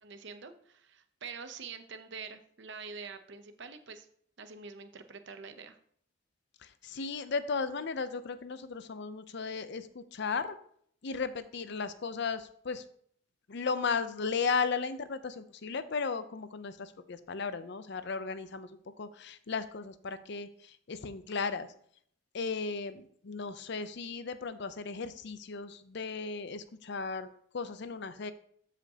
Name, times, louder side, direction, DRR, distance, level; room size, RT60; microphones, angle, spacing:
voice 1, 0.0-4.1 4.4-5.8, right 5 dB, 55° right, 9 dB, 0.7 m, -45 dB
voice 2, 6.6-10.6 11.0-12.8 13.5-18.7 19.0-21.7 22.3-28.3, left 5 dB, 55° left, 12 dB, 0.6 m, -35 dB
13.0 x 5.1 x 2.8 m, 0.62 s
head